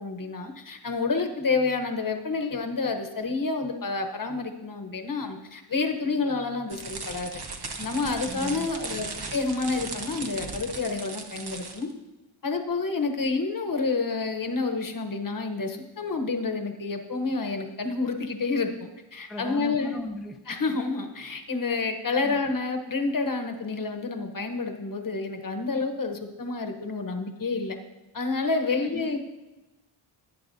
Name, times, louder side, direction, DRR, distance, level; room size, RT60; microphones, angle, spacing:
voice 1, 0.0-7.3 7.8-11.9 12.4-19.9 20.5-27.8 28.1-29.2, left 3 dB, 45° left, 4 dB, 1.0 m, -29 dB
sound 1, 6.7-11.9, right 3 dB, 55° right, 1.0 m, -37 dB
voice 2, 8.2-8.7 19.3-20.4 22.2-22.4 28.8-29.2, left 2 dB, ahead, 3 dB, 0.5 m, -37 dB
17.5 x 9.1 x 2.7 m, 1.1 s
wide cardioid pair, 130°, 48 cm